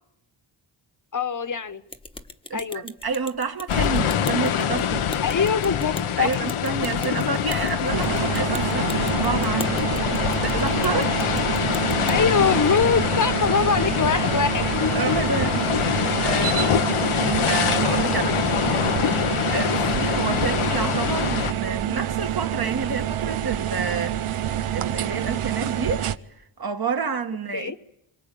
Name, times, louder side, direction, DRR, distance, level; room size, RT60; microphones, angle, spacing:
voice 1, 1.1-1.8 2.5-2.8 5.2-6.4 12.1-14.6 20.4-20.6 27.5-27.7, left 5 dB, 40° left, 1.3 m, -23 dB
sound 1, 1.9-12.2, left 1 dB, 10° left, 1.2 m, -40 dB
voice 2, 2.5-5.1 6.2-11.2 14.9-18.4 19.0-24.2 24.7-26.1 26.6-27.8, right 5 dB, 50° right, 2.0 m, -29 dB
sound 2, 3.7-21.5, left 9 dB, 90° left, 1.1 m, -24 dB
sound 3, 7.9-26.2, right 11 dB, 85° right, 0.9 m, -27 dB
26.5 x 24.0 x 8.6 m
cardioid pair, 85°, 49 cm